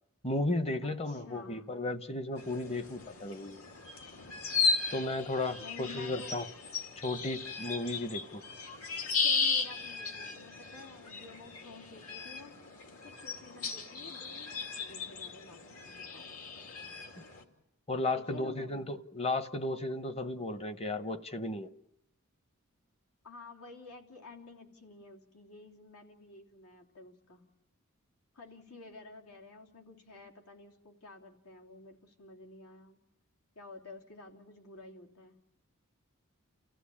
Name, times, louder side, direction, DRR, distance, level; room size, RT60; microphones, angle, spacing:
voice 1, 0.2-3.6 4.9-6.5 7.0-8.4 17.9-21.7, left 2 dB, 25° left, 0.9 m, -34 dB
voice 2, 0.8-1.7 5.6-6.4 9.2-12.6 13.0-16.3 18.1-18.8 23.2-27.5 28.3-33.0 33.6-35.4, left 3 dB, 85° left, 3.3 m, -51 dB
sound 1, 2.4-17.4, left 4 dB, 70° left, 2.5 m, -36 dB
29.5 x 15.5 x 8.6 m
head